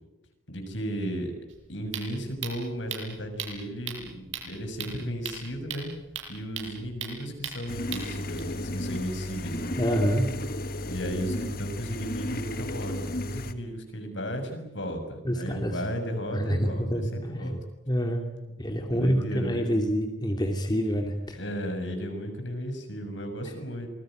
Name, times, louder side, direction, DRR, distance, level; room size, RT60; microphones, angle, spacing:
voice 1, 0.5-1.3 1.7-5.9 6.3-9.7 10.9-17.6 18.5-18.6 18.9-19.8 21.3-23.9, equal, 70° left, 5 dB, 6.8 m, -34 dB
sound 1, 1.5-8.4, right 8 dB, 75° right, 8.0 m, -39 dB
sound 2, 7.7-13.5, left 1 dB, 50° left, 1.7 m, -34 dB
voice 2, 9.8-10.2 15.2-15.8 16.3-17.1 17.4-17.5 17.9-21.4, equal, 20° left, 3 dB, 2.7 m, -27 dB
27.0 x 21.0 x 9.2 m, 0.96 s
head